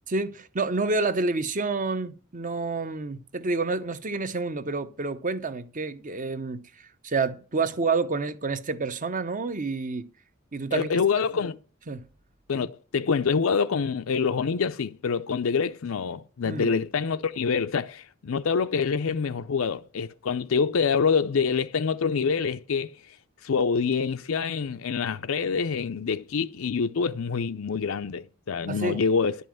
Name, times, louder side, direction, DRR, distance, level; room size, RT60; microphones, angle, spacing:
voice 1, 0.1-6.6 7.0-10.1 10.5-10.9 11.9-12.0 16.4-16.7 28.7-29.0, right 3 dB, 40° right, 0.8 m, -28 dB
voice 2, 10.7-11.6 12.5-23.0 23.4-29.4, left 5 dB, 70° left, 0.5 m, -26 dB
11.5 x 5.5 x 7.6 m
head